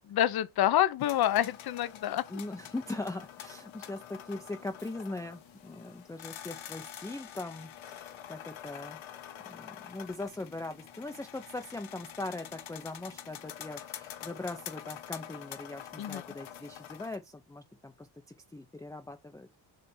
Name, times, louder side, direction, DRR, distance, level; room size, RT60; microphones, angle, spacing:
voice 1, 0.1-2.2 16.0-16.2, left 12 dB, 50° left, 0.7 m, -27 dB
sound 1, 1.0-17.2, left 10 dB, 75° left, 1.2 m, -46 dB
voice 2, 2.3-9.0 9.5-18.1 18.5-19.5, left 2 dB, 5° left, 0.5 m, -40 dB
6.9 x 3.3 x 5.4 m
cardioid pair, 135°, 47 cm